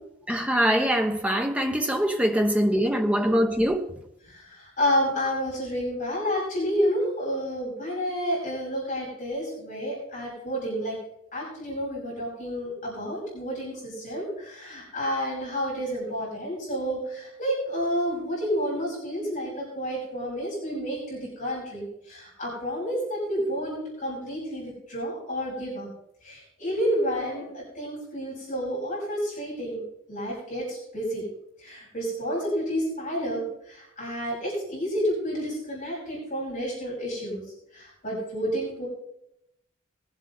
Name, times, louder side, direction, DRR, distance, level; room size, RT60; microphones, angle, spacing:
voice 1, 0.3-3.9, equal, 5° right, 1.0 m, -23 dB
voice 2, 4.2-11.0 11.3-25.9 26.2-29.8 30.1-31.3 31.6-37.4 37.7-38.9, equal, 40° left, 5.8 m, -30 dB
20.5 x 7.9 x 4.0 m
head